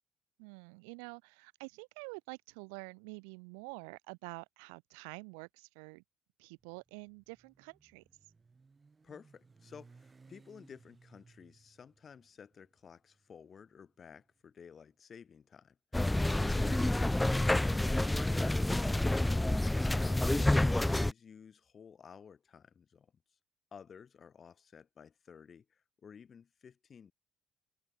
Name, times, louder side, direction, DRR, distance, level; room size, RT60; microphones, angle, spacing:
voice 1, 0.4-6.0 6.4-8.0 20.3-20.5, right 39 dB, 90° right, 1.5 m, -48 dB
Motorcycle, 6.6-14.8, right 4 dB, 30° right, 3.8 m, -63 dB
voice 2, 9.0-16.1 16.4-23.1 23.7-27.1, left 7 dB, 45° left, 7.0 m, -54 dB
sound 1, 15.9-21.1, left 1 dB, 10° left, 0.4 m, -28 dB
supercardioid pair, 70°, 0 cm